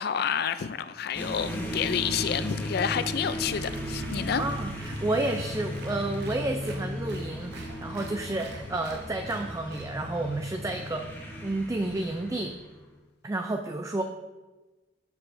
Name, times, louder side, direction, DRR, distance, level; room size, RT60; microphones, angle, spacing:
voice 1, 0.0-4.4, left 7 dB, 60° left, 0.4 m, -29 dB
sound 1, 1.1-12.9, equal, 10° left, 0.8 m, -36 dB
Applause, 3.3-9.9, right 2 dB, 65° right, 0.6 m, -45 dB
voice 2, 4.3-11.1 11.4-12.6 13.2-14.0, right 2 dB, 15° right, 0.3 m, -31 dB
13.5 x 4.7 x 2.6 m
head